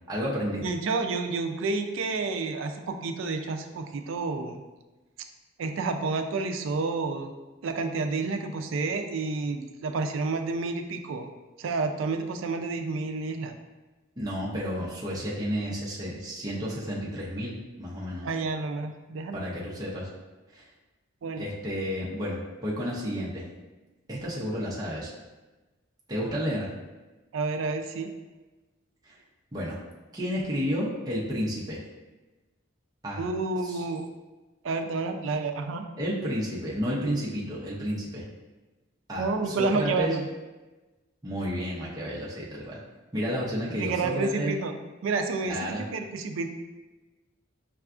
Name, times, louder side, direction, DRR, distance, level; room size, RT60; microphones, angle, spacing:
voice 1, 0.1-0.6 14.2-18.3 19.3-20.1 20.5-20.6 21.4-23.4 24.1-25.1 26.1-26.7 29.0-29.2 29.5-29.8 30.1-31.8 33.0-33.2 33.6-33.8 36.0-38.2 39.1-40.2 41.2-42.8 43.1-44.6 45.5-45.9, equal, 20° right, -6 dB, 0.6 m, -31 dB
voice 2, 0.6-4.6 5.6-7.3 7.6-11.3 11.6-13.6 18.2-19.5 21.2-21.5 27.3-28.1 33.2-34.1 34.6-35.9 39.2-40.2 43.7-44.7 45.0-46.5, right 3 dB, 70° right, 6 dB, 0.3 m, -30 dB
5.5 x 2.3 x 2.4 m, 1.2 s
head